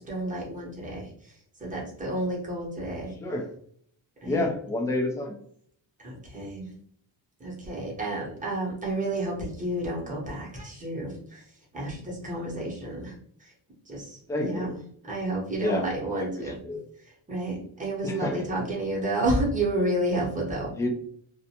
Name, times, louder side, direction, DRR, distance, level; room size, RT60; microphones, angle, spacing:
voice 1, 0.1-1.0 1.6-3.1 4.2-4.5 6.0-6.7 7.4-11.4 11.7-13.1 13.9-14.8 15.1-16.6 17.3-20.7, right 1 dB, 15° right, -3 dB, 0.8 m, -30 dB
voice 2, 4.2-5.3 14.3-14.8 15.6-15.9 16.1-16.8 18.0-18.5 20.7-20.9, left 2 dB, 5° left, 1 dB, 0.3 m, -29 dB
2.5 x 2.1 x 2.8 m, 0.63 s
cardioid pair, 135°, 45 cm